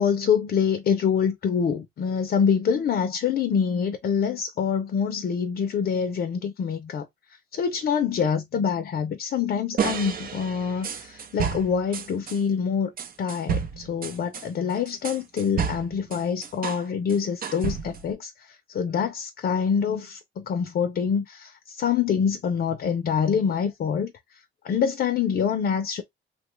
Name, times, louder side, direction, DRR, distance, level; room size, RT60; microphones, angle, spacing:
voice 1, 0.0-7.1 7.5-12.9 13.2-24.1 24.6-26.0, left 7 dB, 55° left, 0.6 m, -25 dB
sound 1, 9.8-12.4 13.0-16.8 17.1-18.1, right 7 dB, 45° right, 0.6 m, -31 dB
2.8 x 2.3 x 3.1 m
cardioid pair, 90°, 20 cm